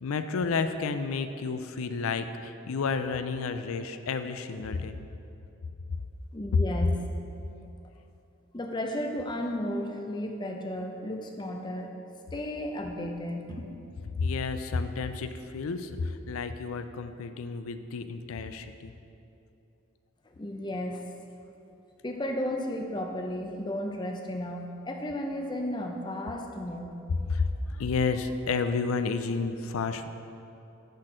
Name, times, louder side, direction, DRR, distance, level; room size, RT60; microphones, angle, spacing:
voice 1, 0.0-5.0 6.5-6.6 14.1-18.9 27.3-30.1, left 4 dB, 85° left, 10 dB, 0.4 m, -31 dB
voice 2, 6.3-7.0 8.5-11.9 12.3-13.8 20.3-21.1 22.0-27.0, left 1 dB, 20° left, 3 dB, 0.5 m, -34 dB
10.5 x 4.3 x 5.0 m, 2.8 s
head